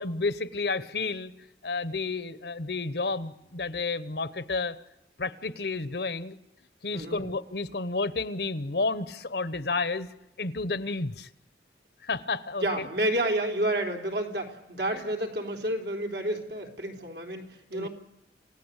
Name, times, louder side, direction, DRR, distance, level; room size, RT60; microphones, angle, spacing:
voice 1, 0.0-1.3 1.6-4.8 5.2-6.4 6.8-11.3 12.0-12.9 14.9-15.1 17.7-17.9, left 3 dB, 65° left, 15 dB, 1.0 m, -31 dB
voice 2, 6.9-7.2 12.6-17.9, right 1 dB, 75° right, 3 dB, 3.8 m, -30 dB
28.5 x 17.0 x 8.3 m, 0.96 s
head